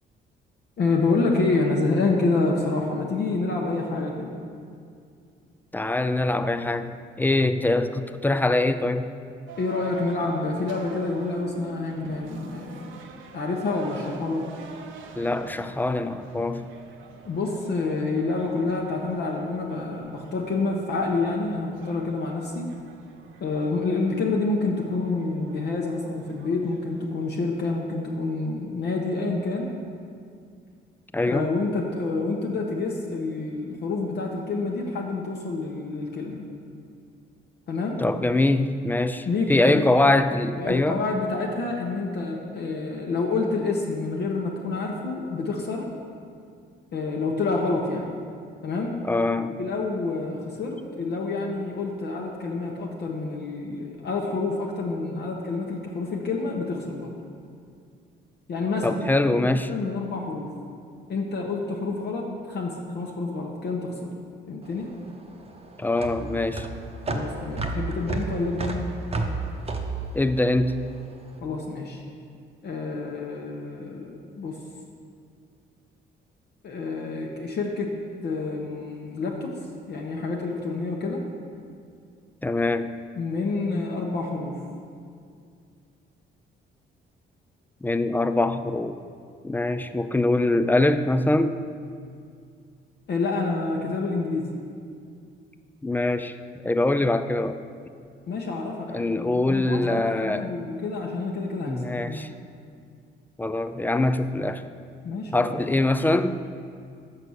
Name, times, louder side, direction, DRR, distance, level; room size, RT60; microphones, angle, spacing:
voice 1, 0.8-4.4 9.6-12.9 13.3-14.5 17.2-22.7 23.4-29.7 31.3-36.5 37.7-38.0 39.2-39.9 40.6-45.9 46.9-48.2 48.6-48.9 49.6-57.2 58.5-59.0 59.4-60.5 61.1-64.1 64.5-64.9 67.1-68.9 71.4-72.0 72.6-74.6 76.6-77.9 78.2-79.6 79.9-81.3 83.1-84.6 93.1-94.5 98.3-102.2 105.0-105.6, left 3 dB, 55° left, -1 dB, 0.9 m, -28 dB
voice 2, 5.7-9.1 15.2-16.7 31.1-31.5 38.0-41.0 49.0-49.6 58.8-59.7 65.8-66.7 70.1-70.8 82.4-83.0 87.8-89.0 89.4-91.6 95.8-96.4 96.6-97.6 98.9-100.5 101.7-102.3 103.4-104.6 105.3-106.4, left 2 dB, 10° left, 10 dB, 0.3 m, -23 dB
sound 1, 9.5-27.3, right 5 dB, 75° right, 0.7 m, -46 dB
sound 2, 64.6-71.2, right 3 dB, 30° right, 0.8 m, -31 dB
6.6 x 5.6 x 6.4 m, 2.3 s
cardioid pair, 90°, 20 cm